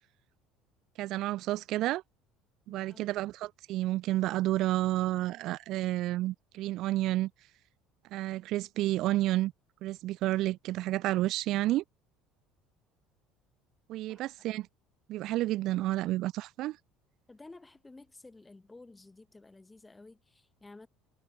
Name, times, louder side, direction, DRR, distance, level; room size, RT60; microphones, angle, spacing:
voice 1, 1.0-2.0 2.7-7.3 8.1-9.5 9.8-11.8 13.9-14.7 15.1-16.8, right 16 dB, 55° right, 0.3 m, -30 dB
voice 2, 2.7-3.1 14.1-14.3 17.3-20.9, left 2 dB, 15° left, 4.1 m, -53 dB
figure-of-eight pair, 60°, 0 cm